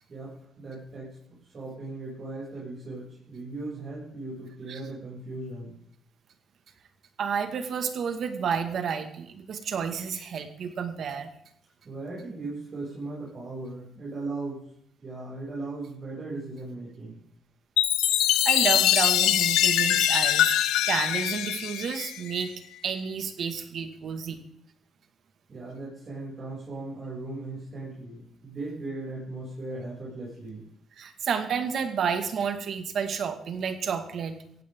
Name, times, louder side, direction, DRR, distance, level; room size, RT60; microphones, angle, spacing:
voice 1, 0.1-1.2 1.4-5.7 11.8-14.7 15.0-17.2 25.5-30.6, right 2 dB, 40° right, -7 dB, 7.2 m, -38 dB
voice 2, 7.2-11.3 18.4-20.6 20.9-22.5 22.8-24.4 31.0-34.4, right 6 dB, 60° right, 7 dB, 2.0 m, -30 dB
Chime, 17.8-22.5, left 12 dB, 90° left, 0.8 m, -23 dB
17.5 x 16.0 x 3.8 m, 0.68 s
cardioid pair, 90°, 0 cm